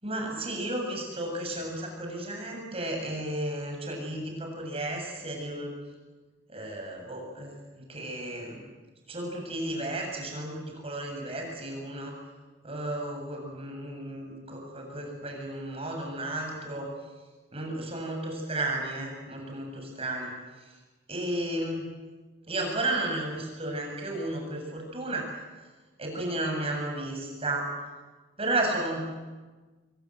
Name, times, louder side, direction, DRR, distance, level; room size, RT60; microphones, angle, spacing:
voice 1, 0.0-5.8 6.5-8.6 9.1-12.2 12.6-16.9 17.5-20.3 20.6-20.7 21.1-21.9 22.5-25.3 26.0-27.7 28.4-29.2, right 1 dB, 30° right, 2 dB, 7.7 m, -33 dB
27.0 x 23.0 x 9.3 m, 1.3 s
head